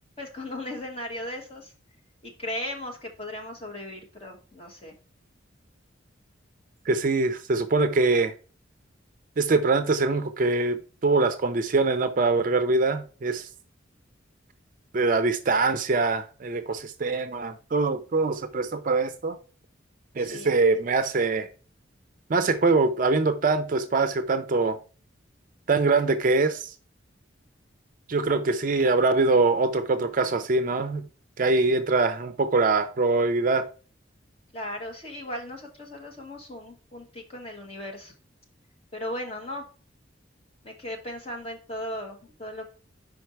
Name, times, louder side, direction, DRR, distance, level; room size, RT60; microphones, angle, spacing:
voice 1, 0.2-1.7 2.2-4.9 20.2-20.5 34.5-38.1 38.9-39.6 40.6-42.7, left 1 dB, 30° left, 1.3 m, -37 dB
voice 2, 6.9-8.3 9.4-13.5 14.9-19.4 20.2-21.5 22.3-24.8 25.7-26.7 28.1-31.1 31.4-33.7, right 3 dB, 40° right, 0.4 m, -23 dB
5.2 x 4.4 x 4.4 m
head